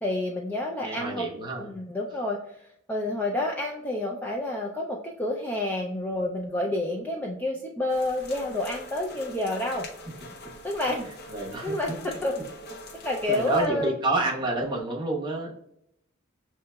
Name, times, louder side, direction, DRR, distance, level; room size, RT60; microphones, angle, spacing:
voice 1, 0.0-2.6 2.9-9.9 10.6-11.1 11.6-12.3 13.0-13.9, left 1 dB, 10° left, -1 dB, 0.3 m, -29 dB
voice 2, 0.8-1.7 11.3-12.0 13.3-15.5, right 2 dB, 20° right, -2 dB, 1.0 m, -29 dB
sound 1, 7.9-13.7, left 1 dB, 50° left, 0.6 m, -43 dB
6.3 x 2.8 x 2.2 m, 0.76 s
head